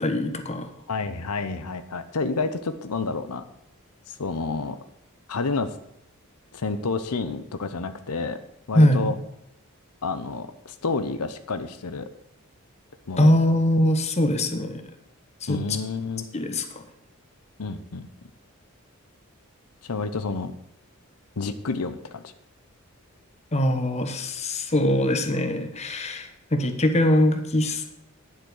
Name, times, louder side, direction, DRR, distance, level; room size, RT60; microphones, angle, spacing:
voice 1, 0.0-0.7 8.7-9.1 13.2-14.8 15.4-15.6 16.3-16.8 23.5-27.8, left 1 dB, 30° left, 7 dB, 1.2 m, -22 dB
voice 2, 0.9-3.4 4.1-4.8 5.3-5.7 6.5-8.4 8.7-9.1 10.0-12.1 13.1-13.3 15.5-16.3 17.6-18.1 19.8-20.5 21.4-22.3, left 4 dB, 90° left, 10 dB, 0.8 m, -29 dB
10.5 x 7.5 x 6.5 m, 0.80 s
head